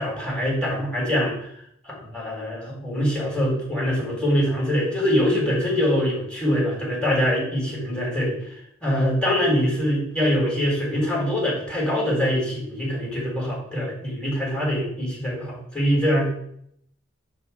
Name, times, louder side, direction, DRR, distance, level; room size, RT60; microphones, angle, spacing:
voice 1, 0.0-1.5 1.9-8.4 8.8-16.3, equal, 5° left, -5 dB, 3.8 m, -24 dB
10.5 x 3.5 x 5.7 m, 0.68 s
head